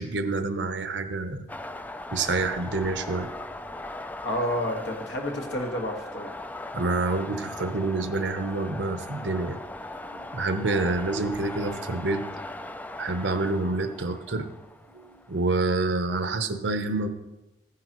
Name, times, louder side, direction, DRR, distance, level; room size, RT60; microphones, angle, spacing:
voice 1, 0.0-1.4 2.1-3.3 6.7-9.6 10.1-12.2 13.0-14.5 14.9-17.1, right 3 dB, 75° right, 8 dB, 0.9 m, -27 dB
sound 1, 1.5-16.3, left 2 dB, 10° left, 0.4 m, -39 dB
voice 2, 4.2-6.3, left 1 dB, 75° left, 1 dB, 1.8 m, -30 dB
15.5 x 9.8 x 3.1 m, 1.0 s
head